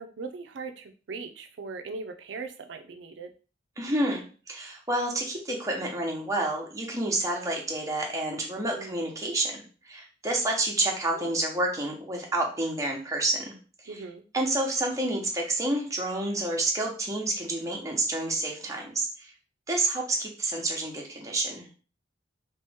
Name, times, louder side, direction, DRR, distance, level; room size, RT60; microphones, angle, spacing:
voice 1, 0.0-3.3 8.6-9.0 11.1-11.4 13.9-14.2, right 4 dB, 85° right, 6 dB, 0.4 m, -39 dB
voice 2, 3.8-13.5 13.8-14.0 14.3-19.3 19.7-21.7, right 2 dB, 20° right, 0 dB, 0.9 m, -29 dB
3.0 x 3.0 x 3.4 m, 0.36 s
head